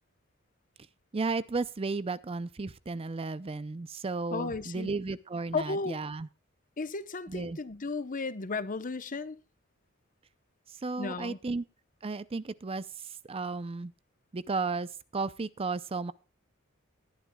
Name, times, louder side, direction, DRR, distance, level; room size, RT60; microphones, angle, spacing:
voice 1, 1.1-6.3 7.3-7.6 10.7-11.6 12.0-13.9 14.3-16.1, right 3 dB, 25° right, 0.5 m, -34 dB
voice 2, 4.3-4.9 5.5-6.0 6.8-9.4 11.0-11.4, left 3 dB, 40° left, 0.9 m, -34 dB
19.5 x 11.0 x 2.3 m
head